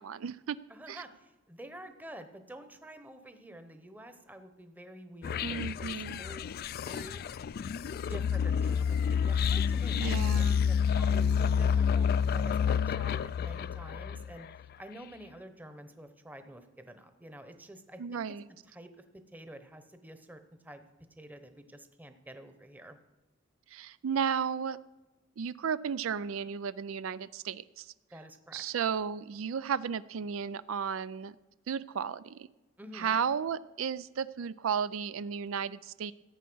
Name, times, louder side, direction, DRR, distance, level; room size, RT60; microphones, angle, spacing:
voice 1, 0.0-0.6 0.9-1.0 5.4-6.2 9.9-10.6 18.0-18.4 23.7-24.8 25.4-27.9 28.5-31.4 31.7-32.5 32.9-36.1, right 7 dB, 90° right, 16 dB, 0.4 m, -34 dB
voice 2, 0.7-6.5 6.8-7.2 7.9-14.5 14.8-18.4 18.7-20.9 21.2-23.0 28.1-28.6 32.8-33.2, right 1 dB, 10° right, 8 dB, 0.9 m, -49 dB
sound 1, 5.2-14.5, left 7 dB, 50° left, 0.3 m, -29 dB
14.5 x 8.4 x 6.2 m, 1.1 s
head